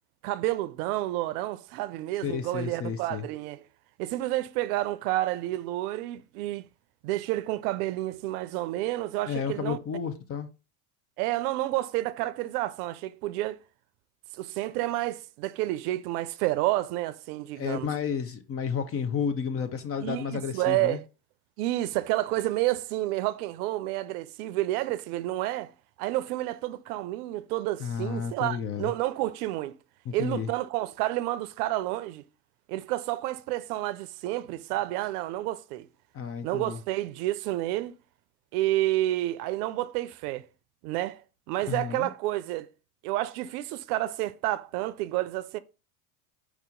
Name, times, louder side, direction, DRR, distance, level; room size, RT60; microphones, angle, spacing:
voice 1, 0.2-3.6 4.0-6.7 7.0-9.8 11.2-13.6 14.3-17.9 20.0-21.0 21.6-25.7 26.0-29.7 30.1-32.2 32.7-35.9 36.4-37.9 38.5-40.4 40.8-41.2 41.5-42.7 43.0-45.6, right 16 dB, 70° right, 0.6 m, -30 dB
voice 2, 2.2-3.3 9.3-10.5 17.6-21.0 27.8-28.9 30.1-30.5 36.1-36.8 41.7-42.1, left 7 dB, 30° left, 0.6 m, -32 dB
4.8 x 2.8 x 3.8 m
supercardioid pair, 100°, 48 cm